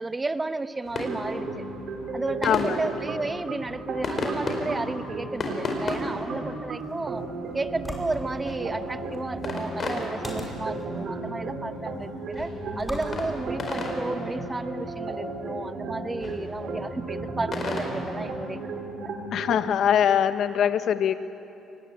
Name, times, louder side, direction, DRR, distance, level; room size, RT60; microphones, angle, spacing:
voice 1, 0.0-1.7 2.1-7.2 7.5-19.1, right 3 dB, 20° right, 11 dB, 1.1 m, -33 dB
sound 1, 0.8-18.5, left 2 dB, 45° left, 4.8 m, -36 dB
sound 2, 0.9-19.6, right 3 dB, 65° right, 4.0 m, -35 dB
voice 2, 2.4-2.8 19.3-21.1, left 9 dB, 65° left, 11 dB, 1.1 m, -22 dB
sound 3, 6.7-14.3, left 1 dB, 5° left, 5.4 m, -43 dB
24.5 x 19.0 x 8.9 m, 2.8 s
cardioid pair, 85°, 0 cm